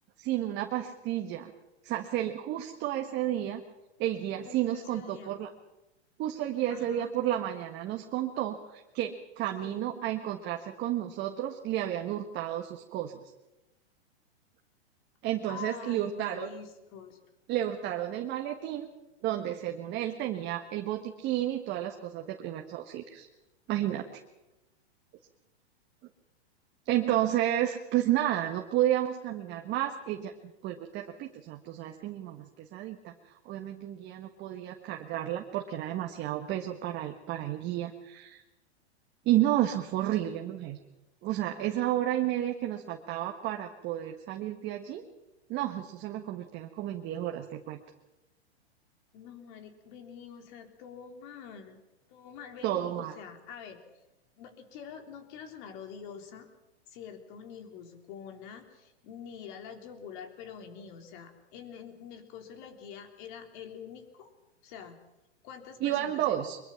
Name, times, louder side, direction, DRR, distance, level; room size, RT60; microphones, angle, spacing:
voice 1, 0.2-1.5 1.8-3.6 4.0-5.5 6.2-13.2 15.2-16.5 17.5-18.9 19.2-23.3 23.7-24.2 26.8-38.4 39.2-40.8 41.2-45.0 45.5-47.8 52.6-53.1 65.8-66.6, right 12 dB, 30° right, 3 dB, 1.5 m, -31 dB
voice 2, 4.5-5.3 6.7-7.1 9.6-9.8 15.5-17.2 49.1-51.8 52.1-53.8 54.4-56.5 56.9-64.3 64.6-65.0 65.4-66.5, left 7 dB, 45° left, 5 dB, 3.6 m, -46 dB
23.0 x 22.5 x 5.8 m, 0.98 s
hypercardioid pair, 130°, 33 cm